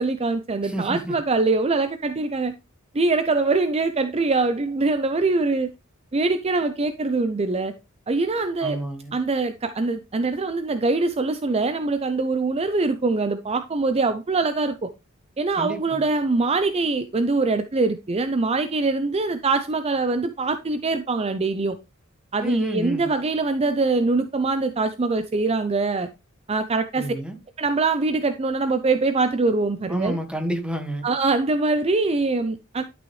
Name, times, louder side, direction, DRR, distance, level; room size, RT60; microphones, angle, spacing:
voice 1, 0.0-2.5 2.9-5.7 6.1-7.7 8.1-8.8 9.1-14.9 15.4-21.8 22.3-26.1 26.5-27.1 27.6-30.2 31.0-32.8, right 3 dB, 30° right, 0.5 m, -23 dB
voice 2, 0.6-1.2 8.6-9.1 15.6-16.0 22.4-23.1 27.0-27.4 29.9-31.1, right 1 dB, 5° right, 1.5 m, -29 dB
11.5 x 6.2 x 3.1 m
head